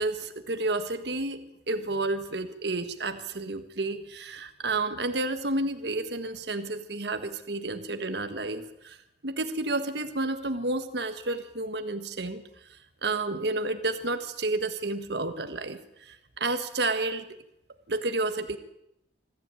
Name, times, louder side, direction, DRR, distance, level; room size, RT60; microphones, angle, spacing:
voice 1, 0.0-1.4 1.7-9.0 9.2-17.2 17.9-18.6, right 2 dB, 65° right, 8 dB, 1.6 m, -31 dB
25.5 x 14.5 x 9.1 m, 0.82 s
head